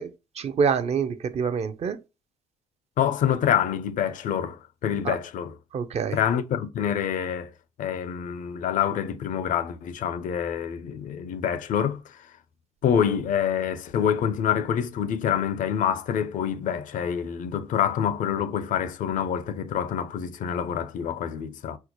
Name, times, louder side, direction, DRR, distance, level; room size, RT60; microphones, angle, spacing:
voice 1, 0.0-2.0 5.0-5.1 5.7-6.2, right 6 dB, 45° right, 0.5 m, -26 dB
voice 2, 3.0-5.5 6.1-7.5 7.8-12.2 12.8-21.8, left 8 dB, 60° left, 0.5 m, -26 dB
4.4 x 2.0 x 2.8 m
hypercardioid pair, 50°, 15 cm